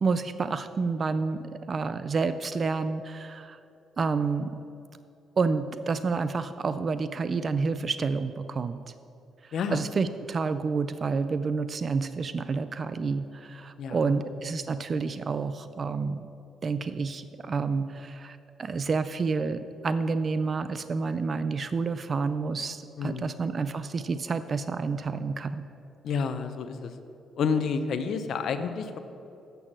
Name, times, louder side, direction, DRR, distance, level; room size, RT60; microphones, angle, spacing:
voice 1, 0.0-3.6 4.0-4.5 5.4-8.8 9.4-16.3 16.6-25.7, right 4 dB, 40° right, 12 dB, 0.4 m, -29 dB
voice 2, 13.8-14.2 23.0-23.3 26.0-26.9 27.4-29.0, left 6 dB, 65° left, 9 dB, 0.6 m, -29 dB
7.2 x 6.9 x 7.3 m, 2.8 s
cardioid pair, 90°, 0 cm